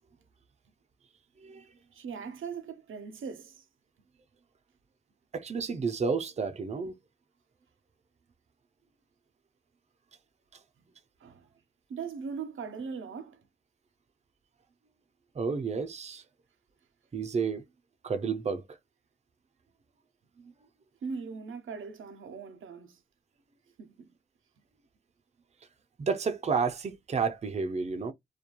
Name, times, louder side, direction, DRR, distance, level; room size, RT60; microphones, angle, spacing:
voice 1, 1.9-3.6 11.2-11.5 11.9-13.5 21.0-23.0 23.8-24.1, right 5 dB, 85° right, 0.5 m, -40 dB
voice 2, 5.3-7.0 15.4-16.2 17.1-17.6 18.0-18.8 26.0-28.1, right 5 dB, 35° right, 0.4 m, -31 dB
2.2 x 2.2 x 2.9 m
cardioid pair, 65°, 20 cm